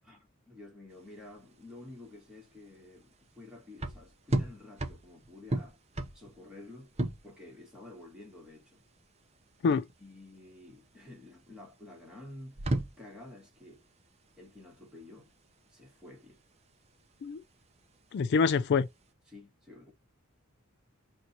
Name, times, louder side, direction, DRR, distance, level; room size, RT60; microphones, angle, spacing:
voice 1, 0.0-5.8 6.1-6.9 7.2-8.8 9.6-12.6 13.0-13.8 14.4-15.3 15.7-16.4 19.3-19.9, left 2 dB, 5° right, 2.0 m, -50 dB
sound 1, 0.9-19.1, right 1 dB, 30° right, 0.7 m, -38 dB
voice 2, 18.1-18.9, left 5 dB, 55° left, 0.3 m, -25 dB
3.9 x 2.7 x 4.2 m
head